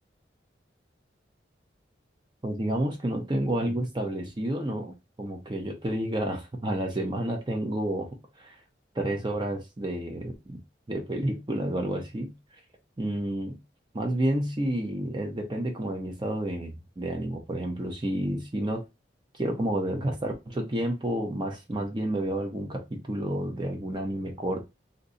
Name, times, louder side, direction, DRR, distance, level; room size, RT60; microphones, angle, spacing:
voice 1, 2.4-8.1 8.4-8.6 8.9-10.6 10.9-12.3 13.0-13.6 13.9-18.8 19.3-24.7, right 1 dB, 25° right, 0.6 m, -30 dB
2.7 x 2.3 x 3.9 m
head